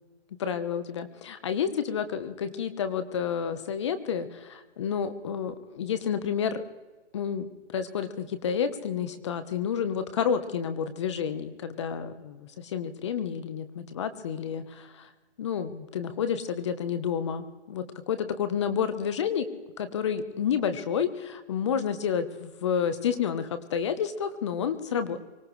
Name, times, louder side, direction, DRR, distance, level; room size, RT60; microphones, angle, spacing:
voice 1, 0.4-6.6 7.1-7.5 7.7-15.1 15.4-19.5 19.8-25.2, left 7 dB, 25° left, 11 dB, 1.0 m, -30 dB
24.5 x 17.5 x 3.2 m, 1.2 s
hypercardioid pair, 160°, 34 cm